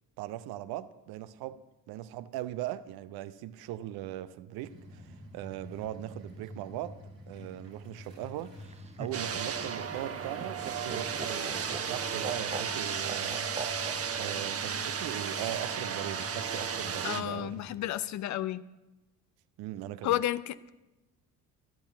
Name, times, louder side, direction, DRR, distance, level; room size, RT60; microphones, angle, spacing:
voice 1, 0.2-7.0 7.3-8.7 9.0-13.5 14.2-17.6 19.6-20.2, right 13 dB, 50° right, 0.8 m, -39 dB
sound 1, 4.6-17.7, left 1 dB, 85° right, 3.3 m, -48 dB
Laughter, 8.6-14.3 15.6-16.2, right 4 dB, 15° right, 0.9 m, -42 dB
sound 2, 9.1-17.2, right 6 dB, 30° right, 1.3 m, -34 dB
voice 2, 17.0-18.6 20.0-20.7, left 13 dB, 40° left, 0.6 m, -32 dB
13.5 x 9.4 x 8.6 m
figure-of-eight pair, 50°, 48 cm